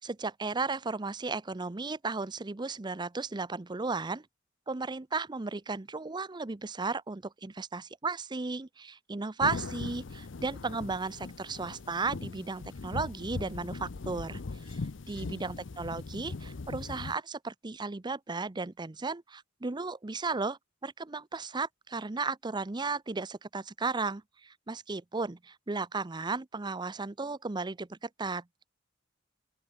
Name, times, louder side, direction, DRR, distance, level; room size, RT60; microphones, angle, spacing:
voice 1, 0.0-4.3 4.7-14.4 14.6-14.8 15.1-28.4, right 4 dB, 25° right, 0.6 m, -35 dB
sound 1, 9.4-17.1, left 3 dB, 70° left, 0.7 m, -40 dB
open air
head